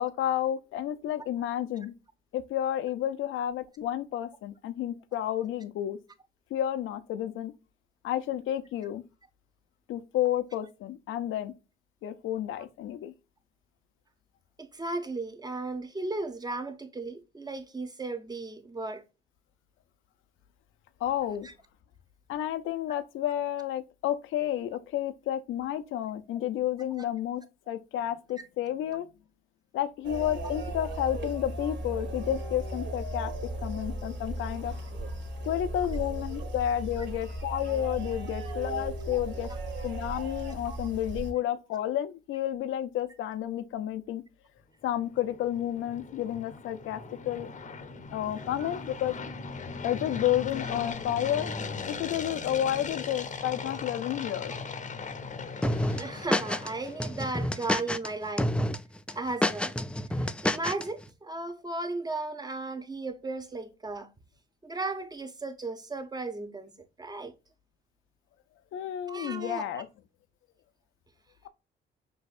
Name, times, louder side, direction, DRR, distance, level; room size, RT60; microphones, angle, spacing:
voice 1, 0.0-1.9 2.3-6.0 6.5-7.5 8.0-9.0 9.9-11.5 12.0-13.1 21.0-21.5 22.3-29.1 29.7-33.3 33.6-34.7 35.4-39.5 39.8-44.2 44.8-47.5 48.1-49.1 49.8-54.5 68.7-69.9, left 11 dB, 80° left, 0.6 m, -31 dB
voice 2, 14.6-19.0 21.4-21.5 26.9-27.1 40.7-40.8 48.6-48.7 56.0-58.5 59.1-59.7 60.1-64.1 64.6-66.7 67.0-67.3 69.1-69.8, right 2 dB, 20° right, 0.8 m, -35 dB
sound 1, 30.0-41.3, right 1 dB, 65° right, 1.6 m, -36 dB
sound 2, 45.0-57.3, left 4 dB, 40° left, 0.7 m, -39 dB
sound 3, 55.6-56.7 57.0-58.1 58.4-58.8 59.1-60.8, left 1 dB, 5° left, 0.3 m, -28 dB
6.2 x 2.7 x 2.4 m
cardioid pair, 90°, 20 cm